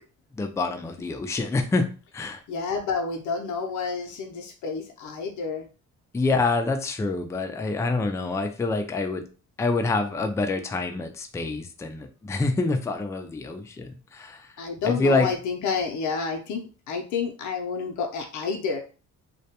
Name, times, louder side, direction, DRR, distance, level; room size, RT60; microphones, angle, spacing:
voice 1, 0.3-1.9 2.1-2.4 6.1-9.2 9.6-14.5 14.8-15.3, left 3 dB, 10° left, 5 dB, 0.3 m, -26 dB
voice 2, 2.5-5.7 14.6-18.8, left 5 dB, 70° left, 2 dB, 0.6 m, -29 dB
2.2 x 2.1 x 2.8 m, 0.35 s
cardioid pair, 90°, 30 cm